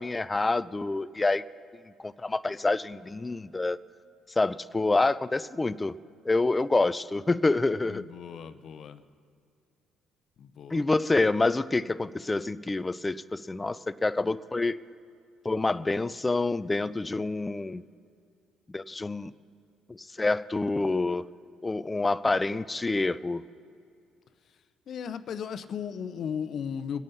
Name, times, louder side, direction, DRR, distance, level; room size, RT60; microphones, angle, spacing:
voice 1, 0.0-1.4 2.0-3.8 4.4-6.0 6.3-8.0 10.7-14.8 15.4-17.8 18.7-19.3 19.9-21.3 21.6-23.4, left 3 dB, 20° left, 16 dB, 0.4 m, -27 dB
voice 2, 7.9-9.0 10.4-10.8 24.5-24.6 24.9-27.0, left 7 dB, 60° left, 11 dB, 0.7 m, -36 dB
24.0 x 8.7 x 4.2 m, 2.4 s
supercardioid pair, 75°, 0 cm